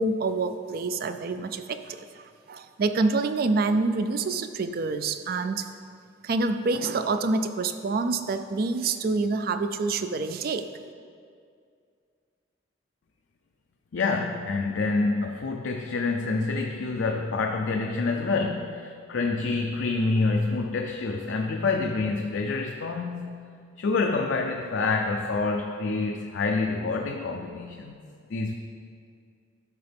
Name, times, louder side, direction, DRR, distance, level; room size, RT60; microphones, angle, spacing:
voice 1, 0.0-5.7 6.2-10.7, right 3 dB, 50° right, 10 dB, 0.4 m, -27 dB
voice 2, 13.9-23.4 23.8-28.0 28.3-28.5, left 3 dB, 70° left, 2 dB, 0.4 m, -27 dB
12.0 x 4.8 x 3.4 m, 2.2 s
head